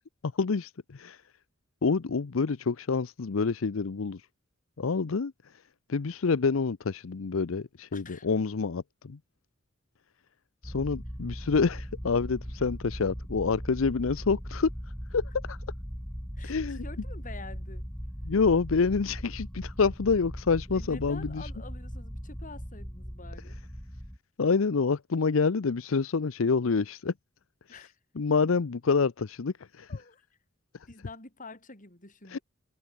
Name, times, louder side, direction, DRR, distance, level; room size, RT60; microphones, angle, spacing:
voice 1, 0.2-1.2 1.8-4.3 4.8-5.6 5.9-9.2 10.6-14.7 15.1-15.6 16.4-16.8 18.2-21.5 24.4-27.1 27.7-27.8 28.2-30.0 30.7-30.9 32.3-32.4, left 4 dB, 80° left, 0.6 m, -27 dB
voice 2, 7.9-8.3 16.4-17.9 20.7-23.6 27.7-28.0 29.9-30.2 30.9-32.4, left 3 dB, 40° left, 6.3 m, -47 dB
sound 1, 10.6-24.2, equal, 5° left, 4.4 m, -39 dB
open air
head